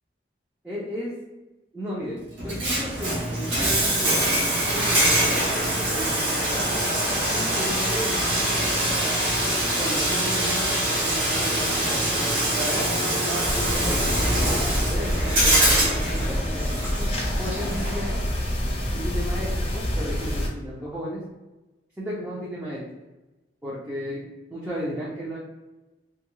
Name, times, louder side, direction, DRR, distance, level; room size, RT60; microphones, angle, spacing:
voice 1, 0.6-1.1 1.7-4.3 4.7-6.8 7.3-9.1 9.8-12.3 12.6-14.1 14.9-17.1 17.4-18.2 18.9-19.5 19.7-21.2 22.0-22.8 23.6-24.2 24.5-25.4, equal, 10° right, -8 dB, 0.5 m, -34 dB
Bathtub (filling or washing), 2.4-18.3, right 1 dB, 80° right, 0.9 m, -24 dB
sound 1, 13.4-20.5, equal, 35° left, 0.5 m, -27 dB
2.7 x 2.3 x 3.0 m, 1.1 s
head